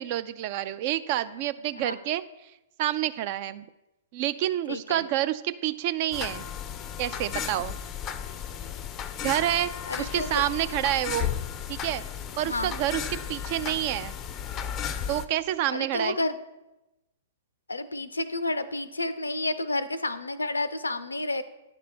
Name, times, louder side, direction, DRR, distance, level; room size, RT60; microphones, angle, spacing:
voice 1, 0.0-2.2 2.8-3.7 4.1-6.4 7.0-7.7 9.2-9.7 10.0-11.3 11.7-12.0 12.4-14.1 15.1-16.2, right 13 dB, 45° right, 14 dB, 0.4 m, -28 dB
voice 2, 4.7-5.0 9.9-10.5 12.4-12.7 15.7-16.4 17.7-21.4, left 2 dB, 85° left, 14 dB, 0.4 m, -30 dB
sound 1, 6.1-15.3, left 9 dB, 30° left, 0.4 m, -34 dB
9.5 x 3.3 x 6.0 m, 0.96 s
figure-of-eight pair, 110°, 0 cm